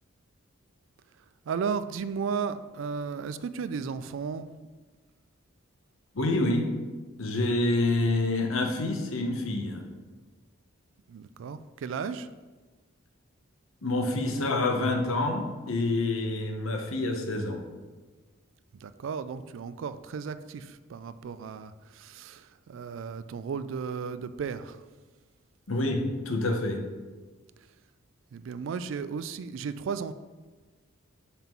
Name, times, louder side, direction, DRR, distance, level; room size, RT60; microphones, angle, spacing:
voice 1, 1.5-4.5 11.1-12.3 18.8-24.8 28.3-30.1, right 6 dB, 65° right, 13 dB, 0.3 m, -34 dB
voice 2, 6.1-6.7 7.2-9.8 13.8-17.6 25.7-26.8, left 2 dB, 75° left, 4 dB, 0.9 m, -27 dB
5.6 x 3.7 x 5.8 m, 1.3 s
head